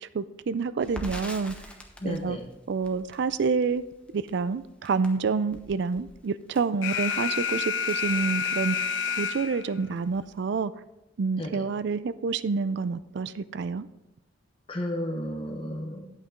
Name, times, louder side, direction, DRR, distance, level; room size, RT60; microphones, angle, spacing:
voice 1, 0.0-1.5 2.0-2.4 2.7-3.8 4.1-10.7 11.2-13.9, right 5 dB, 60° right, 14 dB, 0.4 m, -28 dB
Crackle, 0.8-8.9 9.2-9.3 9.7-10.4, left 1 dB, 5° left, 1.0 m, -45 dB
voice 2, 2.0-2.4 11.4-11.6 14.7-16.0, left 1 dB, 30° left, 2 dB, 1.1 m, -33 dB
Alarm, 6.8-9.8, left 7 dB, 70° left, 0.5 m, -29 dB
9.4 x 8.4 x 3.7 m, 0.94 s
head